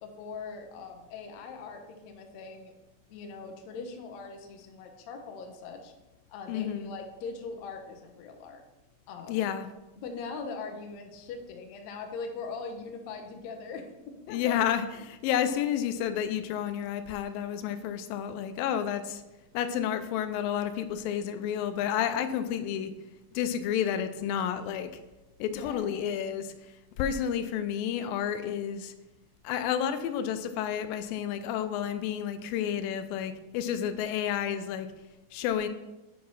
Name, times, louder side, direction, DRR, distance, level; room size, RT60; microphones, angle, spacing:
voice 1, 0.0-2.7 3.1-5.9 6.3-8.6 9.1-9.4 10.0-14.6 25.5-25.9, left 4 dB, 70° left, 4 dB, 1.9 m, -41 dB
voice 2, 6.5-6.9 9.3-9.7 14.3-19.2 19.5-22.9 23.3-24.9 25.4-28.9 29.4-34.9 35.3-35.7, left 9 dB, 90° left, 10 dB, 2.3 m, -30 dB
7.4 x 4.7 x 5.5 m, 1.0 s
omnidirectional pair, 3.9 m